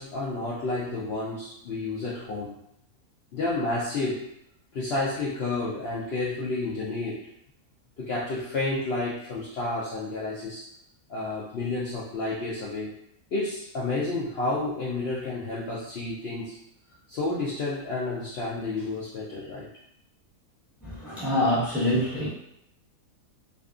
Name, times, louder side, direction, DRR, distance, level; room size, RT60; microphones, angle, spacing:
voice 1, 0.0-2.6 3.3-4.2 4.7-7.3 8.0-10.6 11.1-12.9 13.3-16.6 17.1-19.7, left 2 dB, 75° left, -7 dB, 0.5 m, -30 dB
voice 2, 20.8-22.3, left 1 dB, ahead, -11 dB, 0.9 m, -25 dB
2.6 x 2.4 x 2.4 m, 0.76 s
omnidirectional pair, 1.7 m